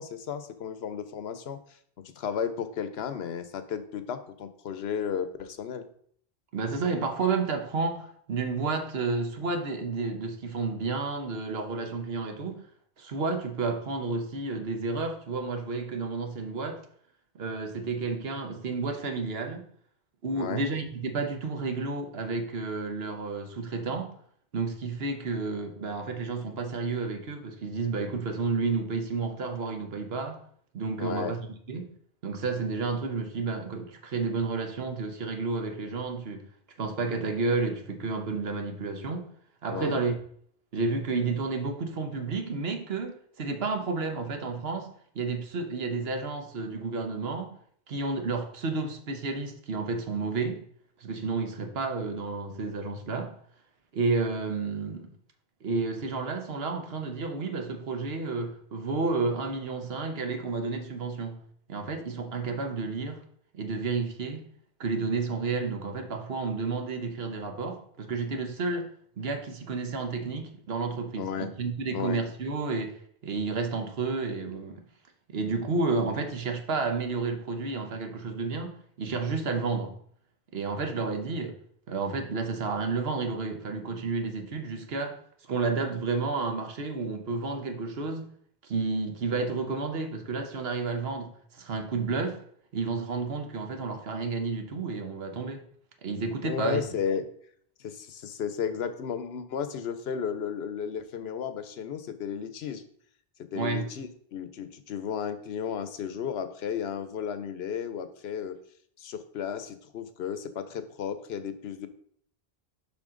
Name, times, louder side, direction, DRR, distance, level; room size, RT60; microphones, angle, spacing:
voice 1, 0.0-1.6 2.0-5.9 20.3-20.7 31.0-31.3 39.7-40.0 71.2-71.5 71.9-72.2 96.4-97.3 97.8-102.8 103.4-108.6 109.0-111.9, left 7 dB, 85° left, 1.0 m, -34 dB
voice 2, 6.5-12.6 13.0-16.8 17.3-19.6 20.2-24.1 24.5-30.4 30.7-31.9 32.2-36.5 36.8-39.3 39.6-40.2 40.7-44.9 45.1-47.6 47.9-50.6 51.0-53.4 53.9-55.1 55.6-61.4 61.7-63.2 63.5-64.5 64.8-74.8 75.3-80.0 80.5-81.6 81.9-85.2 85.5-88.3 88.6-92.4 92.7-95.6 96.0-96.8 103.5-103.9, right 4 dB, 75° right, 1.2 m, -31 dB
7.2 x 5.7 x 3.8 m
omnidirectional pair, 1.0 m